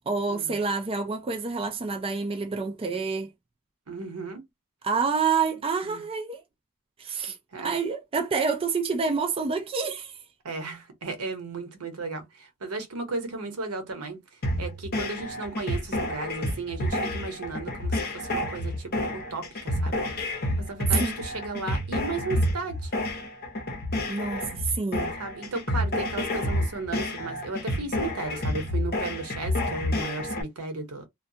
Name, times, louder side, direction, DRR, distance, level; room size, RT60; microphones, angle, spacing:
voice 1, 0.1-3.3 4.8-6.4 7.0-10.2 21.0-21.2 24.1-24.5 24.7-25.1, right 5 dB, 25° right, 0.4 m, -28 dB
voice 2, 3.9-4.5 5.8-6.0 7.5-7.8 10.4-14.2 14.6-22.9 25.2-31.1, right 3 dB, 85° right, 0.9 m, -35 dB
sound 1, 14.4-30.4, left 1 dB, 45° left, 0.8 m, -29 dB
2.3 x 2.2 x 2.7 m
head